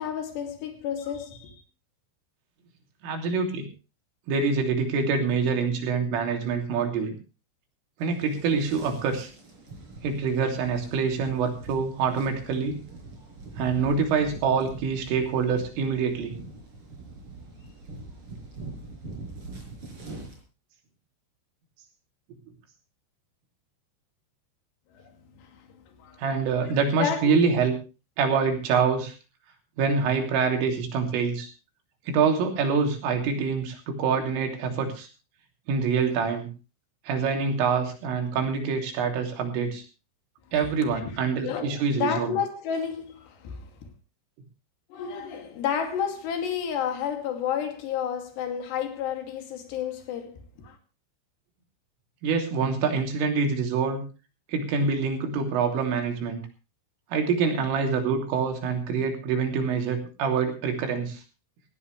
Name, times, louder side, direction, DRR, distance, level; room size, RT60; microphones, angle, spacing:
voice 1, 0.0-1.6 24.9-26.2 27.0-27.4 40.8-41.2 41.4-43.7 44.9-50.8, left 8 dB, 65° left, 4.4 m, -31 dB
voice 2, 3.0-3.6 4.3-7.1 8.0-9.3 10.0-12.8 13.6-16.4 26.2-27.8 28.2-29.1 29.8-31.5 32.1-35.1 35.7-36.5 37.1-39.8 40.5-42.3 52.2-54.0 54.5-56.4 57.1-61.2, right 5 dB, 90° right, 5.6 m, -25 dB
sound 1, 8.0-20.4, right 2 dB, 30° right, 5.6 m, -43 dB
18.5 x 16.0 x 3.3 m
omnidirectional pair, 5.6 m